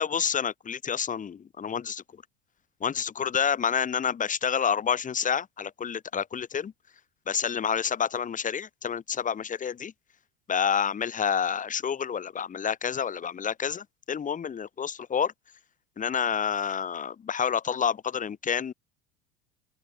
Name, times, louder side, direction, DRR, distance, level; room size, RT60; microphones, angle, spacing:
voice 1, 0.0-2.0 2.8-6.7 7.3-9.9 10.5-15.3 16.0-18.7, left 7 dB, 20° left, 1.3 m, -28 dB
open air
figure-of-eight pair, 75°, 38 cm